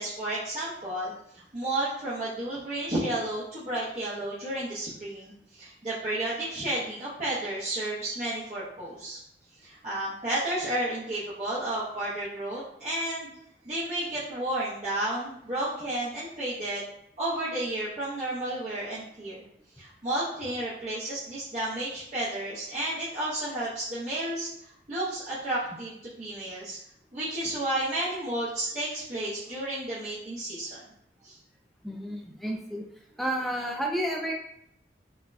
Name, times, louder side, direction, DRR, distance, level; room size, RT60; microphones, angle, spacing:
voice 1, 0.0-9.2 9.6-13.3 13.6-16.8 17.2-19.4 19.8-26.8 27.1-30.8 31.2-31.4, right 1 dB, 40° right, -10 dB, 0.7 m, -32 dB
voice 2, 31.8-32.8 33.2-34.3, right 1 dB, ahead, 0 dB, 0.3 m, -31 dB
4.0 x 2.2 x 2.5 m, 0.75 s
head